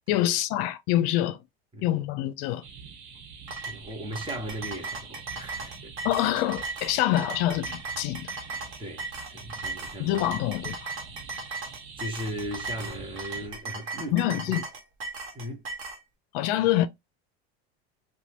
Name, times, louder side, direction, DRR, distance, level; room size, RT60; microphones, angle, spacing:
voice 1, 0.1-1.4 1.8-2.6 6.0-8.3 10.0-10.8 14.1-14.6 16.3-16.9, left 13 dB, 60° left, 0.5 m, -25 dB
sound 1, 2.6-13.5, right 5 dB, 85° right, 1.1 m, -46 dB
sound 2, 3.5-16.0, right 3 dB, 40° right, 1.2 m, -37 dB
voice 2, 3.7-5.9 8.8-10.2 12.0-14.2 15.3-15.6, equal, 15° right, 0.9 m, -37 dB
3.0 x 2.2 x 2.9 m
supercardioid pair, 120°, 31 cm